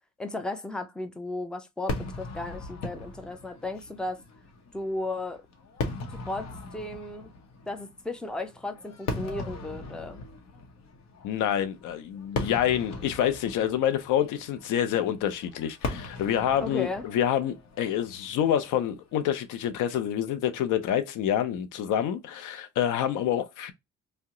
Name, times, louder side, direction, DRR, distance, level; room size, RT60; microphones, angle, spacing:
voice 1, 0.2-4.2 4.7-5.4 6.3-7.3 7.7-10.2 16.6-17.0, left 2 dB, 5° left, 0.5 m, -35 dB
Fireworks, 1.9-19.2, left 3 dB, 60° left, 0.9 m, -39 dB
voice 2, 11.2-23.7, left 10 dB, 90° left, 0.6 m, -27 dB
2.8 x 2.1 x 3.6 m
cardioid pair, 90°, 30 cm